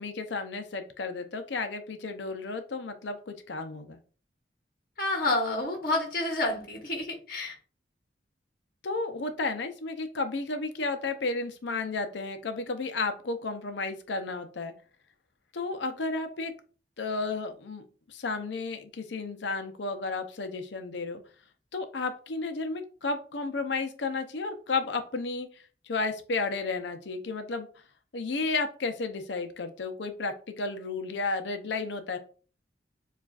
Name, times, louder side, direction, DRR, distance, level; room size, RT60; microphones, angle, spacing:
voice 1, 0.0-4.0 8.8-14.7 15.5-16.5 17.0-17.8 18.1-21.2 21.7-25.5 25.9-27.7 28.1-32.2, left 3 dB, 75° left, 8 dB, 0.6 m, -32 dB
voice 2, 5.0-7.6, left 2 dB, 55° left, 2 dB, 1.1 m, -29 dB
7.1 x 2.4 x 2.4 m, 0.39 s
head